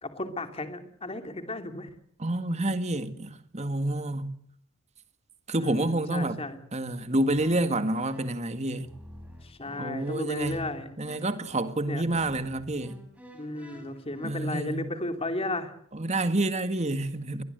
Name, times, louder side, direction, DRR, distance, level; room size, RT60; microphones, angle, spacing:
voice 1, 0.0-1.9 5.6-6.6 9.4-11.0 11.9-12.0 13.3-15.7, left 2 dB, 25° left, 2.8 m, -34 dB
voice 2, 2.2-4.3 5.5-6.4 6.7-8.9 9.8-10.6 11.0-13.0 14.2-14.8 15.9-17.4, right 1 dB, 30° right, 1.8 m, -28 dB
sound 1, 7.4-14.4, equal, 5° right, 5.6 m, -50 dB
23.0 x 20.0 x 8.1 m
head